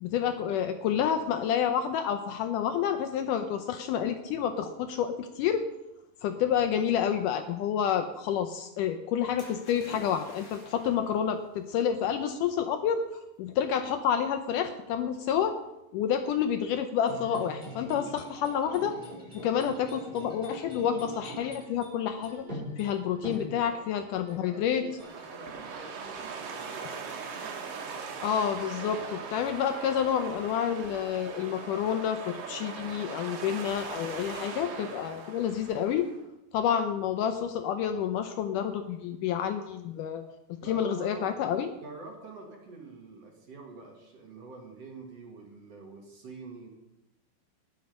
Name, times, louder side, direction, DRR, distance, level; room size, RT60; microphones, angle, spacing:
voice 1, 0.0-5.6 6.2-15.6 15.9-18.9 19.3-22.5 22.8-24.8 28.2-36.1 36.5-40.2 40.6-41.7, left 8 dB, 75° left, 8 dB, 2.0 m, -29 dB
Splash splatter, 9.4-11.2 12.1-12.2, left 2 dB, 40° left, 4.8 m, -49 dB
sound 1, 17.0-26.3 26.7-27.8, equal, 15° right, 5.0 m, -44 dB
voice 2, 23.3-23.9 24.3-27.3 40.6-41.3 41.8-46.7, right 3 dB, 50° right, 1 dB, 2.7 m, -47 dB
sound 2, 25.0-36.2, right 5 dB, 70° right, 3.1 m, -40 dB
19.5 x 6.9 x 5.3 m, 0.92 s
omnidirectional pair, 4.2 m